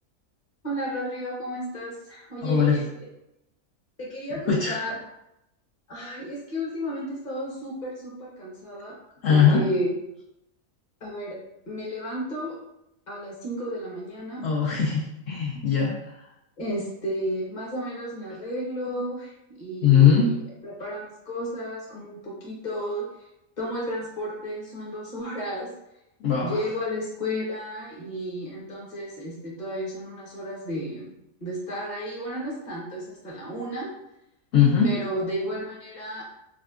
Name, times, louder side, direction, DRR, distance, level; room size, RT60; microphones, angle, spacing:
voice 1, 0.6-2.8 4.0-5.0 5.9-9.0 9.3-9.9 11.0-11.4 11.7-12.6 13.1-14.4 16.6-20.3 20.6-23.1 23.6-25.7 26.4-31.1 31.4-33.9 34.8-36.2, equal, 35° left, -4 dB, 1.0 m, -32 dB
voice 2, 2.4-2.8 4.5-4.8 9.2-9.6 14.4-16.3 19.8-20.3 26.2-26.6 34.5-34.9, left 7 dB, 60° left, -4 dB, 0.7 m, -20 dB
4.2 x 2.3 x 2.3 m, 0.85 s
omnidirectional pair, 1.5 m